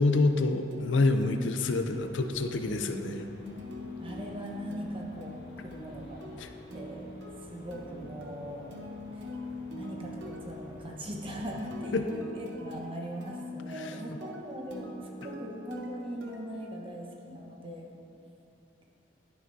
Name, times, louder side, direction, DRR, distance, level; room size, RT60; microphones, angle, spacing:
voice 1, 0.0-3.3 6.4-6.5 11.9-12.0 13.7-14.0, left 3 dB, 75° left, 7 dB, 0.5 m, -27 dB
sound 1, 0.7-17.4, left 2 dB, 75° right, 0.9 m, -44 dB
sound 2, 1.8-12.1, equal, 60° left, 1.7 m, -50 dB
voice 2, 2.7-3.1 4.0-6.4 6.7-7.1 7.4-8.7 9.1-9.2 9.7-17.9, equal, 30° right, -1 dB, 1.1 m, -40 dB
11.0 x 9.4 x 2.7 m, 2.9 s
head